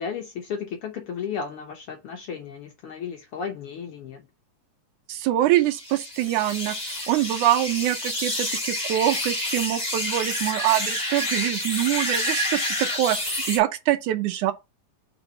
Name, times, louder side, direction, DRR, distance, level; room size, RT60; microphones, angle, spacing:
voice 1, 0.0-4.3, left 6 dB, 75° left, 1.3 m, -34 dB
voice 2, 5.1-14.5, right 14 dB, 80° right, 2.2 m, -24 dB
sound 1, 5.7-13.6, left 1 dB, 15° left, 1.8 m, -28 dB
4.9 x 4.0 x 4.9 m
omnidirectional pair, 3.5 m